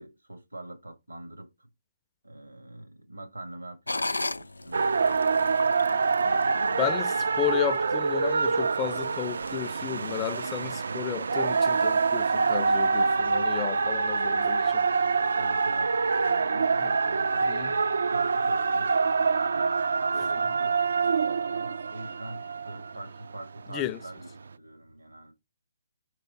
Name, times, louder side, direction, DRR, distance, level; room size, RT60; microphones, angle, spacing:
voice 1, 0.0-1.7 2.2-5.2 6.1-6.9 15.4-20.9 21.2-25.3, right 1 dB, 90° right, 2.2 m, -44 dB
sound 1, 3.9-7.3 7.8-7.9 8.5-8.8 9.4-9.5, left 2 dB, 85° left, 0.4 m, -35 dB
sound 2, 4.7-23.6 24.2-24.3, right 4 dB, 65° right, 0.3 m, -26 dB
voice 2, 6.8-14.9 16.8-16.9 17.5-17.7 23.7-24.0, left 12 dB, 20° left, 0.4 m, -33 dB
4.9 x 4.8 x 4.0 m
figure-of-eight pair, 140°, 0 cm